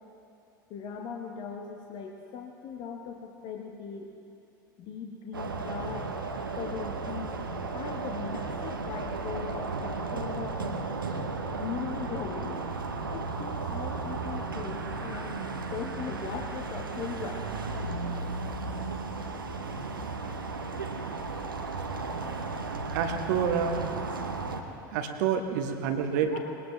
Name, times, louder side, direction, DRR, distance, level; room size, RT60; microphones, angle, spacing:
voice 1, 0.7-4.1 4.8-6.1 6.6-7.4 7.7-10.8 11.6-12.6 13.1-15.4 15.7-17.5 26.3-26.4, left 6 dB, 45° left, 1 dB, 1.2 m, -39 dB
sound 1, 5.3-24.6, right 3 dB, 80° right, 1.0 m, -34 dB
voice 2, 22.9-23.8 24.9-26.4, right 7 dB, 55° right, 5 dB, 1.2 m, -28 dB
20.5 x 19.0 x 3.3 m, 2.8 s
figure-of-eight pair, 75°, 11 cm